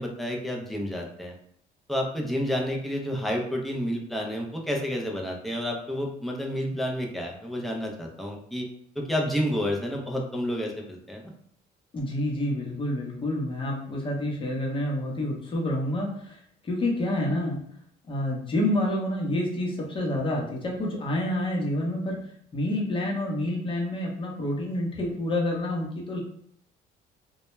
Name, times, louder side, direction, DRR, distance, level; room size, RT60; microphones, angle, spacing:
voice 1, 0.0-1.3 1.9-8.7 9.0-11.2, equal, ahead, -1 dB, 0.5 m, -30 dB
voice 2, 11.9-17.6 18.1-22.2 22.5-26.2, left 1 dB, 30° left, -2 dB, 0.8 m, -28 dB
2.2 x 2.1 x 3.0 m, 0.66 s
cardioid pair, 110°, 17 cm